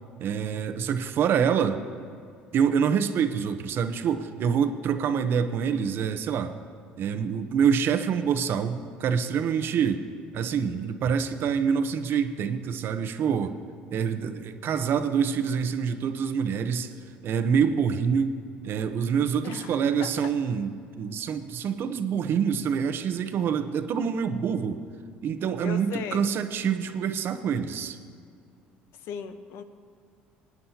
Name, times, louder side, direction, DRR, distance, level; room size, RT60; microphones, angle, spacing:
voice 1, 0.2-1.8 2.5-6.5 7.0-10.1 10.3-13.6 13.9-16.9 17.2-18.4 18.6-20.7 21.0-24.8 25.2-28.0, right 7 dB, 55° right, 8 dB, 0.8 m, -26 dB
voice 2, 19.4-20.3 25.6-26.3 28.9-29.6, left 8 dB, 65° left, 10 dB, 0.9 m, -37 dB
24.5 x 9.4 x 2.9 m, 2.3 s
hypercardioid pair, 70°, 5 cm